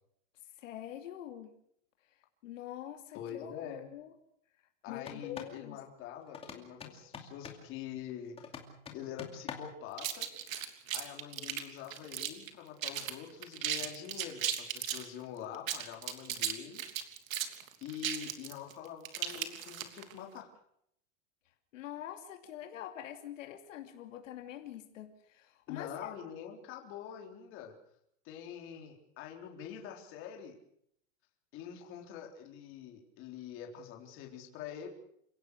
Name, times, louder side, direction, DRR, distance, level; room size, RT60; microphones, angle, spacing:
voice 1, 0.6-1.5 2.4-4.1 4.9-5.8 21.7-26.1, left 11 dB, 70° left, 5 dB, 2.8 m, -45 dB
voice 2, 3.1-3.9 4.8-8.4 8.9-10.3 10.9-16.8 17.8-20.5 25.7-27.7 28.2-30.6 31.5-34.9, left 9 dB, 30° left, 2 dB, 4.0 m, -45 dB
sound 1, 5.0-5.6 6.3-7.7 8.4-9.8, left 6 dB, 15° left, 2.6 m, -46 dB
sound 2, 10.0-12.5 12.8-13.1 13.4-15.1 15.5-20.1, right 10 dB, 90° right, 3.2 m, -36 dB
29.0 x 17.5 x 6.6 m, 0.72 s
supercardioid pair, 170°, 39 cm